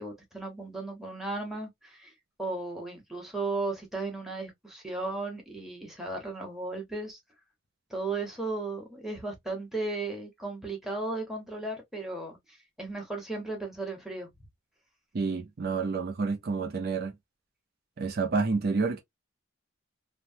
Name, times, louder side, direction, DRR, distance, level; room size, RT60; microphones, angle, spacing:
voice 1, 0.0-2.1 2.4-7.2 7.9-14.3, right 3 dB, ahead, 1.0 m, -35 dB
voice 2, 15.1-17.1 18.0-19.0, right 4 dB, 50° right, 0.5 m, -29 dB
3.0 x 2.1 x 2.7 m
head